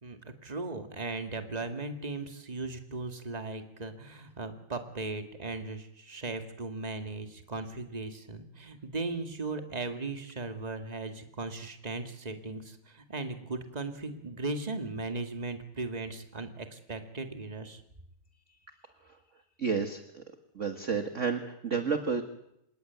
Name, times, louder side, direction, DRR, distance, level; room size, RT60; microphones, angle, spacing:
voice 1, 0.0-17.8, right 3 dB, 20° right, 7 dB, 2.0 m, -37 dB
voice 2, 19.6-20.2 20.5-22.2, right 5 dB, 35° right, 7 dB, 1.6 m, -31 dB
27.0 x 18.5 x 9.4 m, 0.81 s
omnidirectional pair, 2.4 m